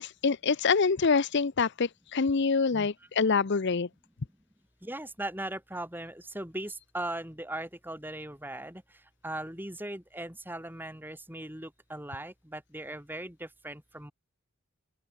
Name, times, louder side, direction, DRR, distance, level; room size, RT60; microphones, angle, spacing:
voice 1, 0.0-3.9, left 5 dB, 55° left, 0.6 m, -26 dB
voice 2, 4.8-8.8 9.2-14.1, right 1 dB, 10° right, 5.0 m, -39 dB
open air
head